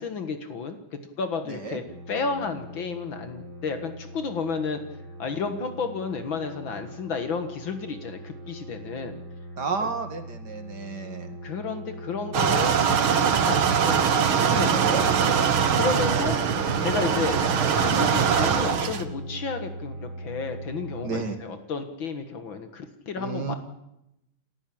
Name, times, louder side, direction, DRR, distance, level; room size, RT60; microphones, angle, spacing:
voice 1, 0.0-4.8 5.2-9.2 9.8-9.9 11.4-14.2 14.5-16.4 16.8-17.4 17.8-23.5, left 5 dB, 65° left, 8 dB, 2.4 m, -32 dB
sound 1, 1.9-21.2, equal, 25° right, 3.5 m, -40 dB
voice 2, 9.6-11.3 14.7-15.0 21.0-21.4 23.2-23.5, right 4 dB, 50° right, 7 dB, 2.8 m, -31 dB
sound 2, 12.3-19.0, right 7 dB, 75° right, 2.3 m, -22 dB
29.0 x 14.0 x 8.7 m, 0.86 s
omnidirectional pair, 2.3 m